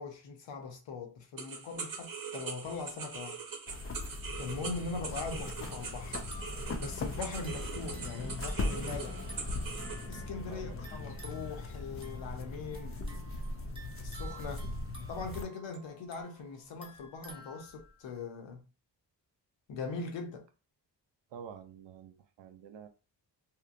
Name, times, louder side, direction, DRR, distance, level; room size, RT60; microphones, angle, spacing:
voice 1, 0.0-3.4 4.4-6.2 6.5-9.2 10.1-13.0 14.0-14.7 15.1-18.6 19.7-20.5, left 4 dB, 90° left, 0.7 m, -41 dB
sound 1, 1.4-10.1, right 5 dB, 50° right, 0.8 m, -42 dB
sound 2, 3.7-15.4, left 2 dB, 35° left, 0.4 m, -39 dB
sound 3, 6.2-18.1, right 2 dB, 10° right, 0.9 m, -53 dB
voice 2, 10.5-10.8 21.3-22.9, right 7 dB, 80° right, 0.6 m, -49 dB
2.8 x 2.0 x 2.5 m
cardioid pair, 90°, 43 cm